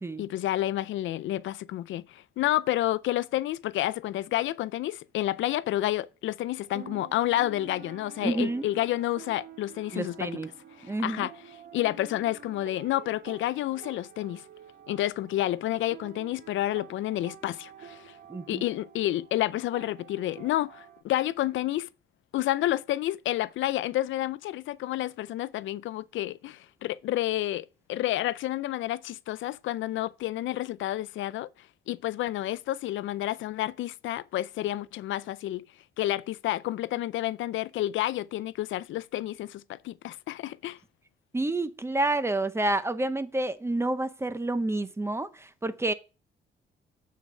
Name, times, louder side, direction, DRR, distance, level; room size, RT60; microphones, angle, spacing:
voice 1, 0.2-10.3 10.8-11.3 11.7-14.4 14.9-18.1 18.5-21.9 22.3-31.5 31.9-35.6 36.0-40.8, left 14 dB, 75° left, 0.4 m, -30 dB
sound 1, 6.6-21.0, right 7 dB, 50° right, 1.2 m, -49 dB
voice 2, 8.2-8.7 9.9-10.5 10.8-11.3 18.3-18.7 41.3-45.9, right 2 dB, 15° right, 0.7 m, -29 dB
8.1 x 4.6 x 5.4 m
cardioid pair, 90°, 20 cm